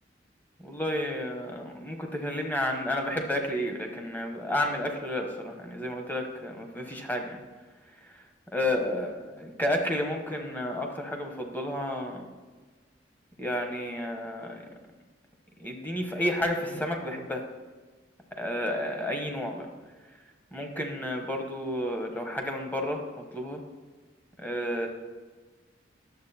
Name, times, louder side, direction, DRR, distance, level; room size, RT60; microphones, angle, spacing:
voice 1, 0.6-7.4 8.5-12.3 13.4-14.6 15.6-17.4 18.4-19.7 20.5-23.0 23.3-23.6 24.4-24.9, left 1 dB, 10° left, 2 dB, 1.1 m, -31 dB
10.5 x 7.3 x 4.3 m, 1.3 s
head